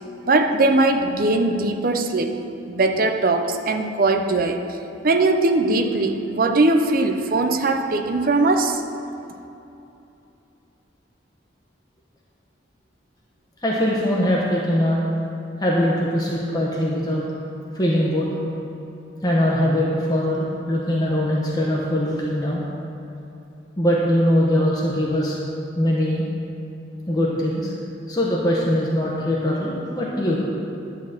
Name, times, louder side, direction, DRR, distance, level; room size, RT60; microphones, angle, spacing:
voice 1, 0.3-2.4 2.7-4.8 5.0-8.8, right 2 dB, 50° right, 6 dB, 0.6 m, -20 dB
voice 2, 13.6-15.0 15.6-17.2 17.7-18.3 19.2-22.6 23.8-25.3 25.8-26.2 27.1-27.7 28.1-30.4, equal, 20° left, -5 dB, 1.0 m, -21 dB
11.0 x 4.1 x 7.6 m, 2.8 s
head